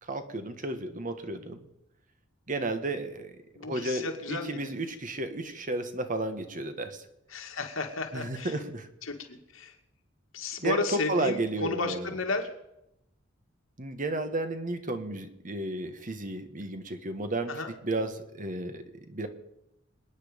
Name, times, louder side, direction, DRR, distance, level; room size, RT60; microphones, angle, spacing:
voice 1, 0.0-1.6 2.5-7.1 8.1-8.9 10.6-10.8 11.1-12.1 13.8-17.5 17.8-19.3, right 2 dB, 40° right, 8 dB, 1.5 m, -33 dB
voice 2, 3.5-4.7 7.3-8.6 9.0-9.8 10.3-12.5 17.5-17.7, left 3 dB, 80° left, 3 dB, 2.3 m, -33 dB
26.5 x 9.5 x 5.3 m, 0.84 s
head